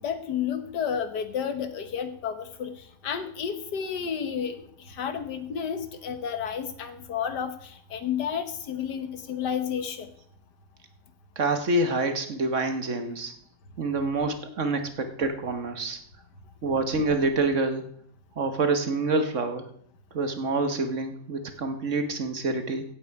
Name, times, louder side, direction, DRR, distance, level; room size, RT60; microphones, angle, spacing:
voice 1, 0.0-10.1, left 7 dB, 70° left, 10 dB, 1.8 m, -31 dB
voice 2, 11.4-13.3 13.8-16.0 16.6-17.8 18.4-19.7 20.1-22.8, right 3 dB, 45° right, 8 dB, 1.4 m, -27 dB
16.0 x 8.3 x 4.7 m, 0.63 s
omnidirectional pair, 1.9 m